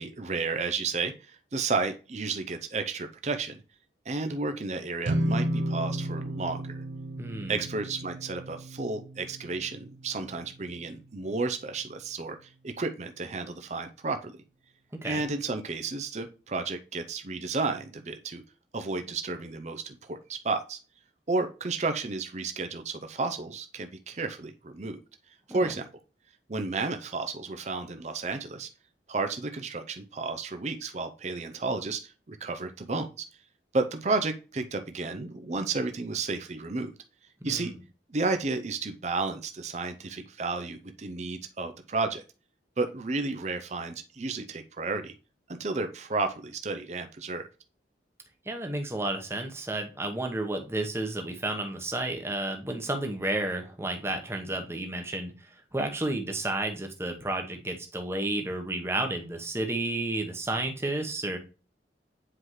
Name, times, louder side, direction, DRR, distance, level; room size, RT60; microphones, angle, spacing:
voice 1, 0.0-3.6 4.1-6.8 7.5-14.4 15.0-18.4 18.7-20.8 21.3-25.0 25.5-25.9 26.5-28.7 29.1-33.2 33.7-36.9 37.4-37.7 38.1-42.2 42.8-45.1 45.5-47.5, right 3 dB, 40° right, 7 dB, 0.5 m, -32 dB
sound 1, 5.0-11.5, right 1 dB, 90° right, 0.7 m, -34 dB
voice 2, 7.2-7.6 15.0-15.2 25.5-25.7 37.4-37.8 48.4-61.4, right 2 dB, 15° right, 4 dB, 1.0 m, -32 dB
7.7 x 4.7 x 3.1 m, 0.34 s
head